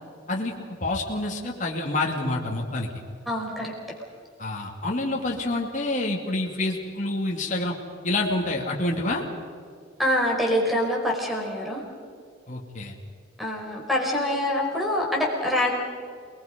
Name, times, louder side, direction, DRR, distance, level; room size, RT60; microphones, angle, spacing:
voice 1, 0.3-2.9 4.4-7.8 8.0-9.2 12.5-13.0, left 2 dB, 40° left, -1 dB, 2.8 m, -27 dB
voice 2, 3.3-3.7 10.0-11.8 13.4-15.7, left 1 dB, ahead, -1 dB, 5.1 m, -25 dB
29.0 x 20.5 x 5.4 m, 2.2 s
head